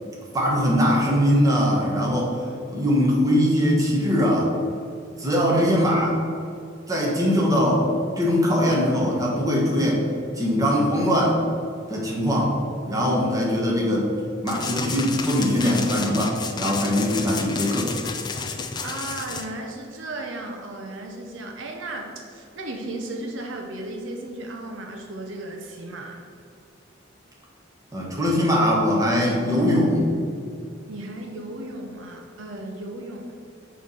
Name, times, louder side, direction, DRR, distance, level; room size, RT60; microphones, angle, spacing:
voice 1, 0.3-2.4 2.7-4.5 5.2-6.2 6.9-7.9 8.2-10.0 10.3-11.4 11.9-12.6 12.8-14.1 14.4-17.9 27.9-30.1, equal, 15° right, -3 dB, 1.1 m, -21 dB
sound 1, 14.5-19.5, left 4 dB, 20° left, 0.3 m, -31 dB
voice 2, 18.8-26.3 30.9-33.3, right 2 dB, 70° right, 2 dB, 0.7 m, -35 dB
6.3 x 3.1 x 5.4 m, 2.5 s
head